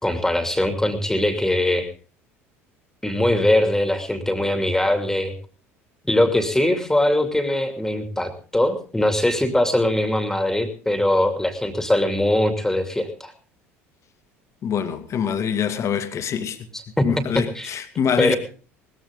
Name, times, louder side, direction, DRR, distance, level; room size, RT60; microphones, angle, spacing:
voice 1, 0.0-1.9 3.0-5.3 6.0-13.3 17.0-17.1 17.5-17.7 18.2-18.4, left 1 dB, 5° left, 2.6 m, -21 dB
voice 2, 14.6-16.6 17.0-18.3, left 7 dB, 45° left, 2.1 m, -24 dB
19.0 x 14.5 x 3.7 m
hypercardioid pair, 65°, 7 cm